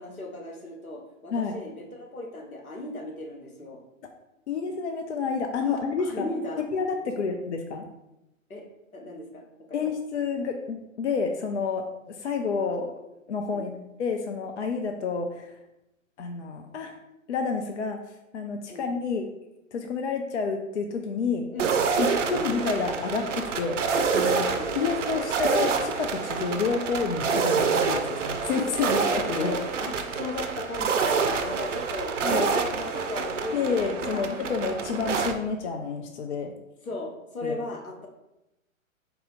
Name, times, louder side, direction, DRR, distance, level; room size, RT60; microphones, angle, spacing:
voice 1, 0.0-3.8 5.6-6.6 7.1-7.2 8.5-8.6 8.9-9.4 9.7-9.8 13.5-13.7 18.7-18.9 21.5-22.7 24.4-24.7 28.8-28.9 29.4-34.3 36.8-38.1, left 2 dB, 90° left, 1 dB, 1.0 m, -36 dB
voice 2, 4.5-6.3 6.7-7.9 9.7-12.9 13.3-15.5 16.2-17.0 17.3-18.0 18.3-19.3 19.7-21.5 22.0-23.8 24.1-29.5 32.2-32.5 33.5-36.5 37.4-37.5, left 5 dB, 55° left, 5 dB, 0.5 m, -29 dB
sound 1, 21.6-35.3, right 5 dB, 60° right, 0.6 m, -27 dB
4.1 x 2.7 x 3.8 m, 0.91 s
figure-of-eight pair, 120°, 41 cm